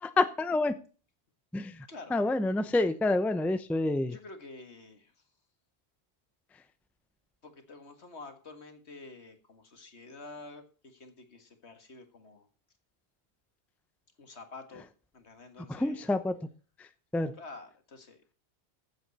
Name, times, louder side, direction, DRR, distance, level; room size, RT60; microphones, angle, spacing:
voice 1, 0.0-0.8 1.5-4.2 15.7-16.4 16.8-16.9 17.1-17.3, left 2 dB, ahead, 0.6 m, -28 dB
voice 2, 4.1-5.1 7.4-12.5 14.2-14.9 15.1-16.1 17.4-18.2, left 3 dB, 75° left, 2.1 m, -48 dB
15.0 x 7.8 x 4.2 m
omnidirectional pair, 1.1 m